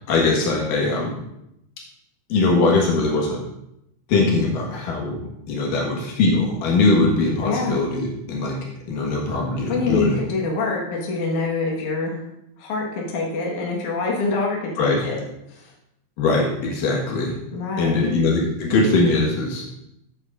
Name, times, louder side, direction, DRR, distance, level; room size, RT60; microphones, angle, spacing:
voice 1, 0.1-1.1 2.3-3.4 4.1-8.6 8.9-10.2 14.8-15.1 16.2-17.3 17.8-19.6, left 3 dB, 85° left, -2 dB, 3.1 m, -21 dB
voice 2, 7.4-7.8 9.7-12.2 12.6-15.2 15.5-15.7 17.5-18.1, left 3 dB, 70° left, -2 dB, 2.9 m, -25 dB
12.5 x 8.2 x 2.5 m, 0.82 s
omnidirectional pair, 3.7 m